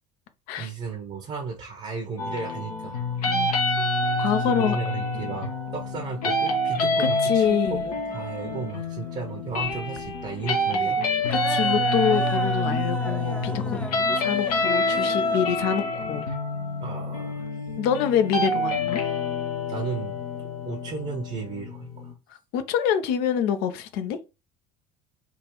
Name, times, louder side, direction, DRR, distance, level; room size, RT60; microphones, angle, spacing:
voice 1, 0.6-3.0 4.4-11.1 13.4-14.0 16.8-17.6 19.7-20.2 20.7-22.1, right 5 dB, 35° right, 0.9 m, -35 dB
sound 1, 2.2-22.1, left 2 dB, 80° left, 0.9 m, -27 dB
voice 2, 4.2-4.8 7.0-7.8 11.3-13.8 14.1-16.3 17.8-19.0 22.5-24.2, left 8 dB, 60° left, 0.6 m, -26 dB
sound 2, 7.4-17.5, left 1 dB, 5° left, 0.4 m, -38 dB
3.7 x 2.4 x 3.0 m
hypercardioid pair, 65°, 19 cm